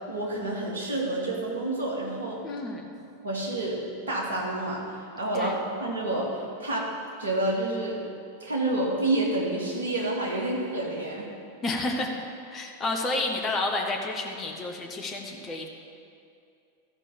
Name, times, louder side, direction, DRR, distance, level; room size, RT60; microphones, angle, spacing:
voice 1, 0.0-2.4 3.2-6.9 7.2-8.0 8.4-11.3, right 2 dB, 65° right, -2 dB, 2.2 m, -29 dB
voice 2, 2.4-2.9 5.3-5.6 11.6-12.2 12.5-15.7, left 2 dB, 25° left, 2 dB, 1.2 m, -30 dB
13.0 x 5.2 x 7.3 m, 2.5 s
figure-of-eight pair, 90°, 0 cm